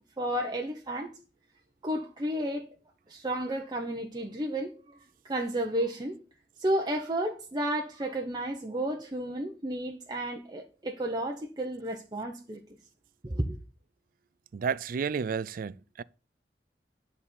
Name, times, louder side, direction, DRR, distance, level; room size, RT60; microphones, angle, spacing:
voice 1, 0.2-1.1 1.8-2.7 3.1-5.0 5.2-6.2 6.6-12.6 13.2-13.6, right 1 dB, 25° right, 0.8 m, -32 dB
voice 2, 14.5-16.0, right 6 dB, 55° right, 0.4 m, -31 dB
9.9 x 4.2 x 7.0 m
head